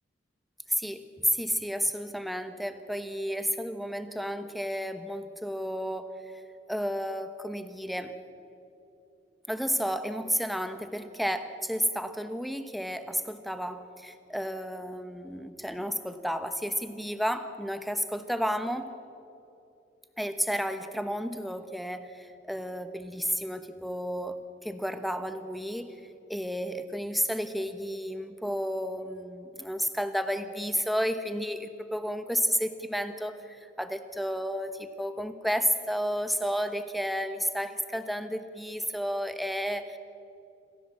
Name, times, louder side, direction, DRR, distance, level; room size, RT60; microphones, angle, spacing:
voice 1, 0.8-6.1 6.7-8.2 9.5-18.9 20.2-26.0 26.3-40.0, equal, ahead, 9 dB, 1.0 m, -32 dB
27.5 x 15.5 x 7.5 m, 2.8 s
head